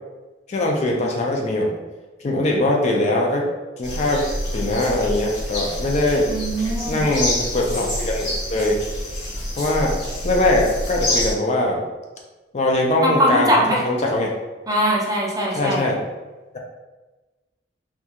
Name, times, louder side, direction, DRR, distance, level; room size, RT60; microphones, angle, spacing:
voice 1, 0.5-1.8 2.2-3.5 3.8-4.2 4.5-6.3 6.9-8.8 9.6-9.9 10.2-11.8 12.5-14.3 15.5-16.0, left 1 dB, 40° left, 0 dB, 0.4 m, -21 dB
sound 1, 3.8-11.3, left 1 dB, 85° left, 0.9 m, -27 dB
voice 2, 6.3-7.1 13.0-13.8 14.7-15.9, equal, 20° right, -3 dB, 0.4 m, -21 dB
2.3 x 2.3 x 2.8 m, 1.2 s
head